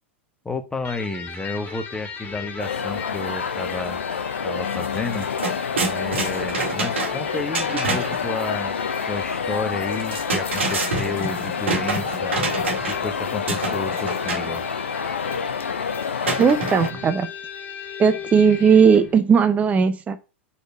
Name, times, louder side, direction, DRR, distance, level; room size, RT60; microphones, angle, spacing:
voice 1, 0.4-4.0 4.4-5.3 5.9-8.8 9.1-12.4 12.8-14.6, left 3 dB, 10° left, 1.1 m, -31 dB
Electric guitar, 0.8-19.2, left 5 dB, 30° left, 2.5 m, -37 dB
sound 1, 2.6-16.9, left 6 dB, 75° left, 0.6 m, -28 dB
sound 2, 4.7-4.9 5.1-8.2 9.9-13.1 13.5-14.5 16.2-17.2, right 3 dB, 75° right, 1.8 m, -27 dB
voice 2, 16.4-17.3 18.0-20.2, right 6 dB, 20° right, 0.6 m, -17 dB
5.0 x 4.3 x 5.9 m
figure-of-eight pair, 90°, 6 cm